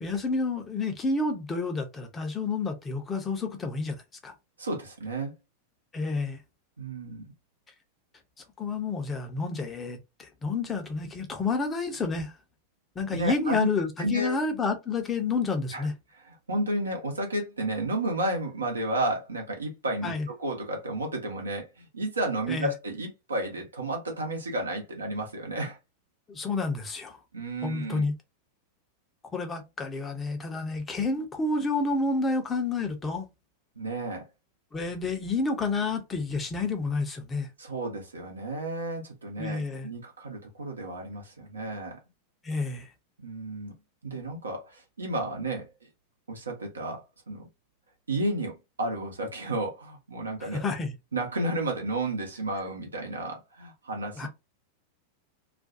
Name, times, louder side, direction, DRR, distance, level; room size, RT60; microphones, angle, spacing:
voice 1, 0.0-4.3 5.9-6.4 8.6-12.3 13.0-15.9 20.0-20.3 22.5-22.7 26.3-27.2 27.6-28.1 29.3-33.3 34.7-37.5 39.4-39.9 42.4-42.9 50.4-50.9 54.2-54.3, left 3 dB, 20° left, 0.6 m, -29 dB
voice 2, 4.6-5.3 6.8-7.3 13.1-13.7 14.0-14.4 15.7-15.9 16.5-25.8 27.3-28.1 33.8-34.3 37.6-42.0 43.2-43.8 44.0-45.9 46.3-47.4 48.1-50.7 51.1-54.3, right 2 dB, 75° right, 0.8 m, -32 dB
2.4 x 2.2 x 2.5 m
figure-of-eight pair, 90°, 0 cm